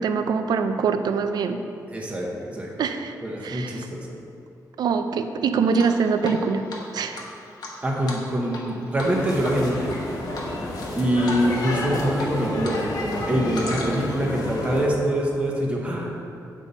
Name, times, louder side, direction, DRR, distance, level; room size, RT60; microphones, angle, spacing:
voice 1, 0.0-1.6 2.8-3.1 3.4-3.9 4.8-6.6 6.9-7.2, right 5 dB, 85° right, 8 dB, 0.5 m, -23 dB
voice 2, 1.9-2.7 3.2-4.1 7.8-10.0 11.0-16.2, equal, 15° right, -2 dB, 0.8 m, -25 dB
Drip, 5.7-6.4 6.7-6.8 7.1-8.7 9.0-9.2 9.4-10.0 10.3-10.9 11.3-11.4 11.7-12.8 13.0-14.2, left 2 dB, 90° left, 1.2 m, -36 dB
sound 1, 9.0-14.9, left 2 dB, 65° left, 1.0 m, -30 dB
8.2 x 5.3 x 4.1 m, 2.6 s
wide cardioid pair, 170°, 7 cm